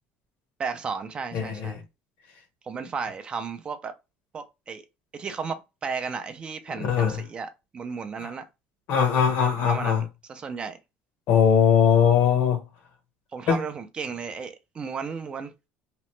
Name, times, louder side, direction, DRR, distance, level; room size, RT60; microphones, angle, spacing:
voice 1, 0.6-1.9 2.7-4.0 4.3-4.8 5.1-8.4 9.7-10.8 13.3-15.5, right 5 dB, 30° right, 0.4 m, -34 dB
voice 2, 1.3-1.8 6.7-7.2 8.2-8.3 8.9-10.0 11.3-12.6 13.5-13.6, left 7 dB, 65° left, 1.0 m, -21 dB
2.9 x 2.0 x 3.1 m
cardioid pair, 130°, 4 cm